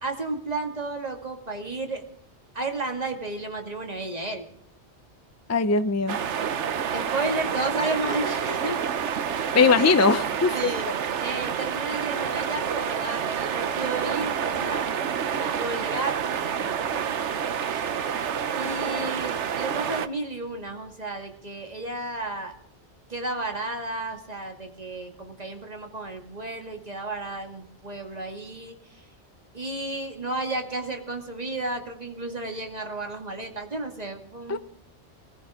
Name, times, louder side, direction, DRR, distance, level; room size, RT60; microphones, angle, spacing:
voice 1, 0.0-2.0 2.5-4.4 6.9-8.8 10.5-14.9 15.3-16.8 17.1-17.2 17.7-18.1 18.5-22.5 23.1-29.0 29.5-34.6, right 2 dB, 35° right, 3 dB, 2.3 m, -33 dB
voice 2, 5.5-6.2 9.5-10.6 34.5-34.6, left 4 dB, 20° left, 11 dB, 0.5 m, -20 dB
sound 1, 6.1-20.1, right 7 dB, 85° right, 1.1 m, -28 dB
22.0 x 15.5 x 3.7 m, 0.71 s
omnidirectional pair, 1.2 m